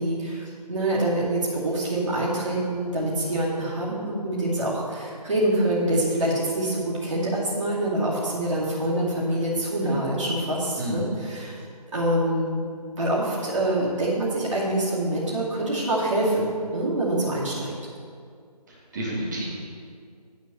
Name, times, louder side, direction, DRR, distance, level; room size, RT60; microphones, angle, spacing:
voice 1, 0.0-11.6 11.9-12.7 12.9-16.5 16.7-17.7, right 1 dB, 45° right, -7 dB, 2.4 m, -25 dB
voice 2, 10.8-11.1 18.7-19.4, right 1 dB, 25° right, -4 dB, 1.5 m, -30 dB
9.9 x 4.5 x 6.7 m, 2.2 s
figure-of-eight pair, 165°, 21 cm